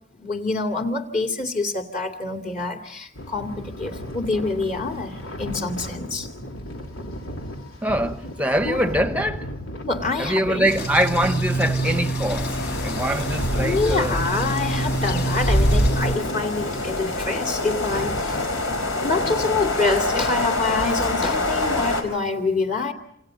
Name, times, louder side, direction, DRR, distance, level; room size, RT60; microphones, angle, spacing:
voice 1, 0.2-6.3 8.6-8.8 9.8-10.7 13.6-18.4 19.0-22.9, left 3 dB, 40° left, 2.6 m, -26 dB
sound 1, 3.1-19.6, left 1 dB, 90° left, 3.9 m, -35 dB
voice 2, 7.8-9.4 10.2-12.5 12.8-14.2, equal, 5° right, 1.0 m, -23 dB
sound 2, 10.7-16.2, right 1 dB, 55° left, 4.0 m, -24 dB
sound 3, 12.3-22.0, left 2 dB, 75° left, 4.6 m, -27 dB
28.0 x 27.5 x 5.2 m
head